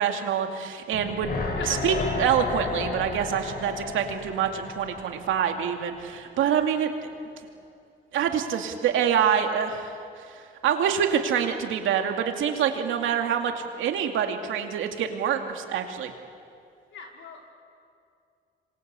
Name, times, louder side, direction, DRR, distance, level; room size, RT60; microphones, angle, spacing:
voice 1, 0.0-1.3 1.7-6.9 8.1-10.3 10.6-16.1, right 8 dB, 80° right, 4 dB, 2.5 m, -26 dB
sound 1, 0.9-6.1 6.4-6.5, left 4 dB, 50° left, 4.5 m, -33 dB
voice 2, 16.9-17.5, left 6 dB, 70° left, 0 dB, 5.1 m, -39 dB
26.5 x 26.0 x 8.4 m, 2.4 s
cardioid pair, 90°, 20 cm